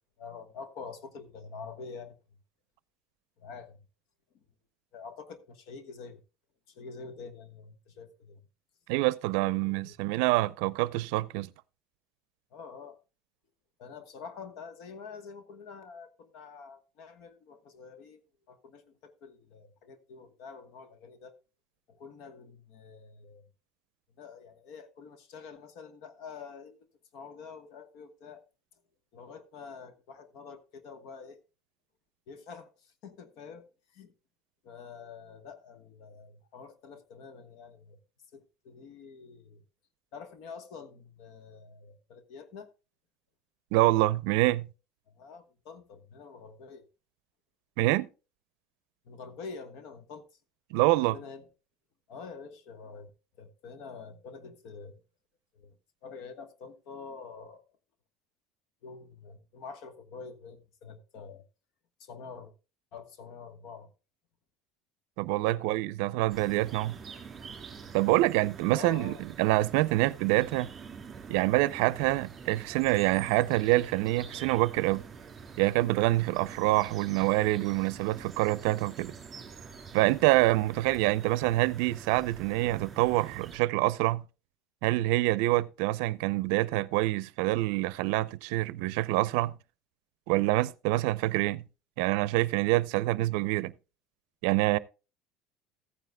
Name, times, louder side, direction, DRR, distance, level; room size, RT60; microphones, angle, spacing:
voice 1, 0.2-2.2 3.4-3.9 4.9-6.2 6.7-8.4 9.4-9.9 12.5-13.0 13.8-18.2 18.5-21.4 21.9-23.5 24.2-26.9 27.1-28.4 29.1-31.4 32.3-34.1 34.6-38.0 38.3-39.6 40.1-42.7 45.1-46.8 49.0-50.3 50.9-51.5 52.1-53.1 53.4-55.0 55.5-55.7 56.0-57.6 58.8-61.4 62.0-62.5 62.9-63.9 65.4-65.7 68.7-69.2, left 5 dB, 60° left, 1.2 m, -46 dB
voice 2, 8.9-11.5 43.7-44.7 47.8-48.1 50.7-51.2 65.2-67.0 67.9-70.7 71.3-75.0 75.6-79.1 79.9-84.2 84.8-89.6 90.3-91.7 92.0-93.7 94.4-94.8, right 19 dB, 75° right, 0.5 m, -26 dB
sound 1, 66.3-83.6, right 6 dB, 20° right, 3.8 m, -46 dB
15.0 x 9.3 x 2.2 m
cardioid pair, 150°, 0 cm